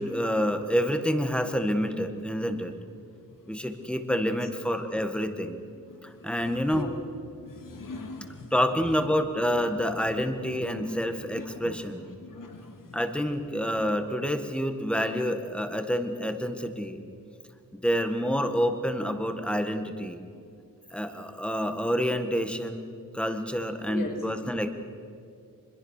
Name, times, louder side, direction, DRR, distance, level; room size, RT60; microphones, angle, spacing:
voice 1, 0.0-2.7 3.5-5.6 6.0-6.9 8.5-12.1 12.9-17.0 17.7-20.3 20.9-22.9 23.1-24.7, equal, 5° left, 7 dB, 1.7 m, -28 dB
voice 2, 6.4-6.9 7.4-8.5 10.5-10.8 11.4-11.7 12.2-12.7 23.9-24.1, left 3 dB, 60° left, 3 dB, 3.2 m, -39 dB
25.0 x 21.5 x 6.7 m, 2.4 s
cardioid pair, 110°, 37 cm